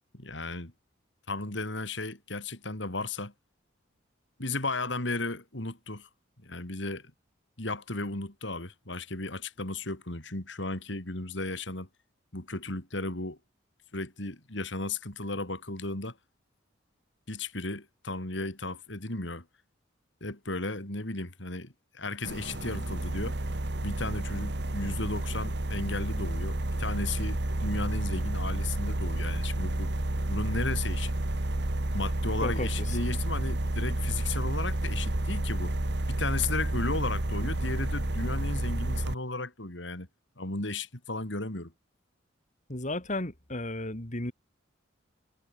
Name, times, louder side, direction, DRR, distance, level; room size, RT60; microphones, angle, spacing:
voice 1, 0.1-0.7 1.3-3.3 4.4-6.1 6.4-7.1 7.6-11.9 12.3-13.4 13.9-16.2 17.3-19.5 20.2-23.3 23.8-29.9 30.3-31.1 31.9-35.7 36.1-40.1 40.4-41.7, left 2 dB, 65° left, 4.1 m, -35 dB
sound 1, 22.2-39.2, right 1 dB, 60° right, 1.8 m, -30 dB
voice 2, 32.4-33.0 42.7-44.3, left 2 dB, 40° left, 3.3 m, -34 dB
head